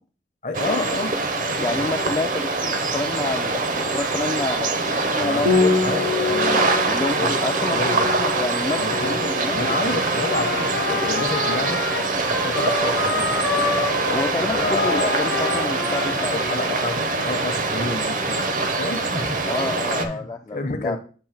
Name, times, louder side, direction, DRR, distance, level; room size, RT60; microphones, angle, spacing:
voice 1, 0.4-1.1 5.2-5.5 5.8-6.7 7.1-7.3 7.6-8.1 8.8-9.2 9.5-11.8 12.3-13.5 14.5-15.1 16.1-19.4 20.0-21.0, left 2 dB, 45° left, 7 dB, 0.7 m, -29 dB
sound 1, 0.5-20.1, right 3 dB, 45° right, 0.7 m, -24 dB
voice 2, 1.6-6.3 6.8-9.8 14.0-16.8 19.5-21.0, left 2 dB, 20° left, 2 dB, 0.3 m, -29 dB
Piano, 5.4-14.8, left 4 dB, 80° right, 2.2 m, -29 dB
Trumpet, 9.8-17.2, left 4 dB, 70° left, 0.9 m, -28 dB
7.7 x 2.7 x 5.7 m, 0.40 s
head